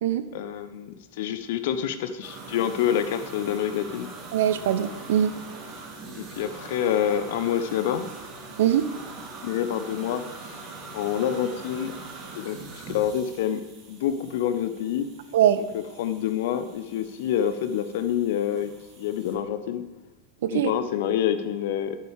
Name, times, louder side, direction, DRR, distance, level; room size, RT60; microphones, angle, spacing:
voice 1, 0.3-4.1 6.1-8.1 9.4-10.6 10.9-11.9 12.3-12.6 12.9-15.1 15.6-18.7 19.0-19.8 20.5-22.0, left 9 dB, 55° left, 11 dB, 0.9 m, -27 dB
sound 1, 2.2-19.3, right 3 dB, 30° right, 3.2 m, -43 dB
voice 2, 4.3-5.3 8.6-8.9 15.3-15.6 20.4-20.7, right 10 dB, 55° right, 12 dB, 0.7 m, -22 dB
11.0 x 9.5 x 5.0 m, 1.1 s
figure-of-eight pair, 90°, 0 cm